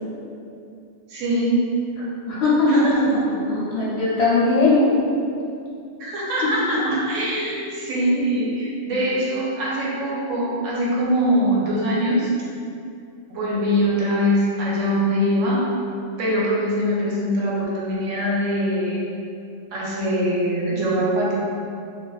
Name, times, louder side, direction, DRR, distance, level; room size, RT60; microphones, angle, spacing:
voice 1, 1.1-1.6 2.7-3.2 6.0-12.3 13.3-15.6 16.2-19.0 19.7-21.3, equal, 85° right, -6 dB, 1.0 m, -23 dB
voice 2, 2.3-5.0 6.4-7.0, left 2 dB, 65° left, -7 dB, 0.8 m, -20 dB
2.4 x 2.2 x 2.3 m, 2.5 s
omnidirectional pair, 1.3 m